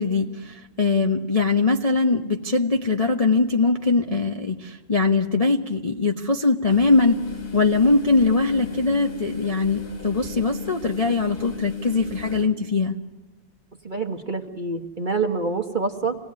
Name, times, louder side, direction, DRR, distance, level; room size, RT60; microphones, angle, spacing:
voice 1, 0.0-7.2 7.5-13.0, left 3 dB, 25° left, 2 dB, 0.8 m, -21 dB
sound 1, 6.7-12.4, left 4 dB, 55° left, 3.2 m, -35 dB
voice 2, 13.8-16.1, right 4 dB, 30° right, 4 dB, 1.2 m, -26 dB
26.0 x 18.5 x 9.6 m, 1.2 s
omnidirectional pair, 2.1 m